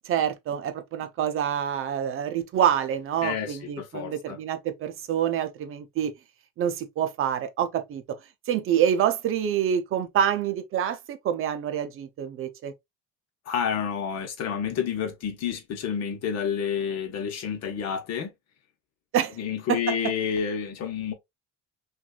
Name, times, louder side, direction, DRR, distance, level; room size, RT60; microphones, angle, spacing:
voice 1, 0.0-6.1 6.6-8.0 8.5-12.7 19.1-19.4 19.7-20.0, right 9 dB, 45° right, 0.6 m, -26 dB
voice 2, 3.2-4.4 13.5-18.3 19.4-21.1, left 7 dB, 55° left, 1.2 m, -29 dB
6.0 x 2.6 x 2.4 m
cardioid pair, 175°, 31 cm